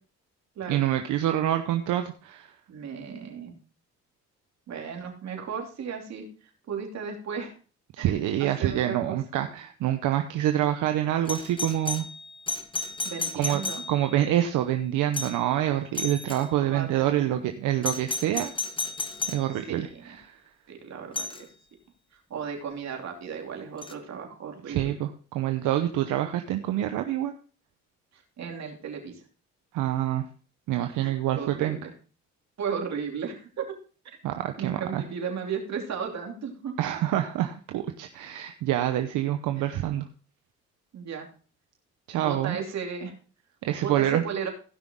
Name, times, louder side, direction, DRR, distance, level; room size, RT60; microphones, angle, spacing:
voice 1, 0.7-2.5 8.0-12.0 13.4-13.6 13.9-18.5 19.3-19.9 20.2-20.3 24.7-27.3 29.7-30.2 30.7-31.8 34.2-35.0 36.8-40.0 42.1-42.6 43.6-44.2, right 12 dB, 90° right, 7 dB, 0.8 m, -26 dB
voice 2, 2.7-3.6 4.7-7.5 8.0-8.1 8.4-9.2 13.0-13.8 16.6-17.5 19.7-20.2 20.7-21.3 22.3-24.9 28.1-29.2 31.0-31.9 32.6-33.6 34.6-36.7 39.6-39.7 40.9-41.3 42.2-43.1 43.8-44.5, right 6 dB, 65° right, 2 dB, 3.0 m, -35 dB
Doorbell, 11.3-14.2 15.1-15.5 15.9-16.5 17.8-19.5 21.2-21.4 23.8-23.9, left 3 dB, 15° left, 0.9 m, -33 dB
16.0 x 6.1 x 3.7 m, 0.39 s
cardioid pair, 90°, 30 cm